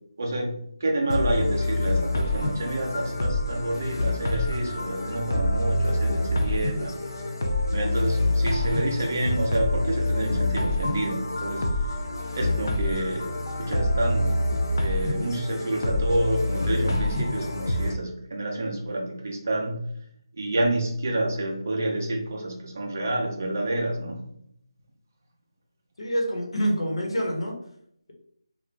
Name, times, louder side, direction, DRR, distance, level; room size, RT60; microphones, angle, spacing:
voice 1, 0.2-0.5 0.8-7.0 7.7-12.0 12.3-14.4 14.8-19.8 20.3-24.3, right 1 dB, 30° right, 1 dB, 0.5 m, -28 dB
sound 1, 1.1-17.9, left 1 dB, 40° left, 0.4 m, -26 dB
voice 2, 26.0-27.6, equal, 85° left, 0 dB, 1.1 m, -26 dB
2.9 x 2.4 x 3.3 m, 0.70 s
figure-of-eight pair, 180°, 3 cm